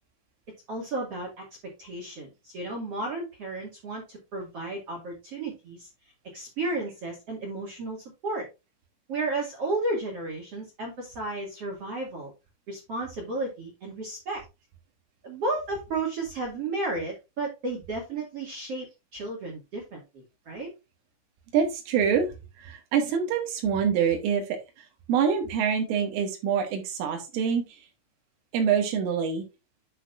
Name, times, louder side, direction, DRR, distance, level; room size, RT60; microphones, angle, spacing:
voice 1, 0.7-5.9 6.3-8.5 9.1-12.3 12.7-14.4 15.2-18.9 19.1-20.7, right 2 dB, 45° right, 0 dB, 2.3 m, -33 dB
voice 2, 21.5-22.3 22.6-24.6 25.1-27.6 28.5-29.4, right 7 dB, 85° right, 3 dB, 4.1 m, -25 dB
9.9 x 6.6 x 2.5 m, 0.25 s
omnidirectional pair, 5.6 m